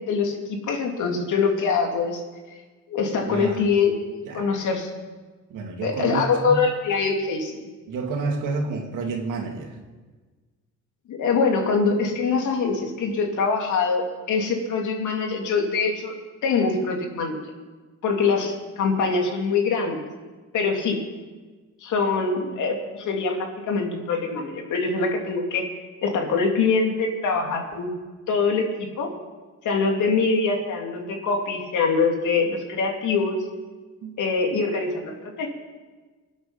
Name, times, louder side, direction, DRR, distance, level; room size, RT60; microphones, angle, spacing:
voice 1, 0.0-2.2 2.9-4.9 5.8-7.6 11.1-16.1 16.4-17.4 18.0-20.0 20.5-21.0 21.8-27.9 28.3-29.1 29.6-33.4 34.2-35.5, left 4 dB, 80° left, 2 dB, 2.9 m, -24 dB
voice 2, 3.3-3.6 4.3-4.5 5.5-6.7 7.9-9.8 34.0-34.2, right 3 dB, 80° right, 1 dB, 2.8 m, -29 dB
24.5 x 8.2 x 5.8 m, 1.3 s
cardioid pair, 90°, 30 cm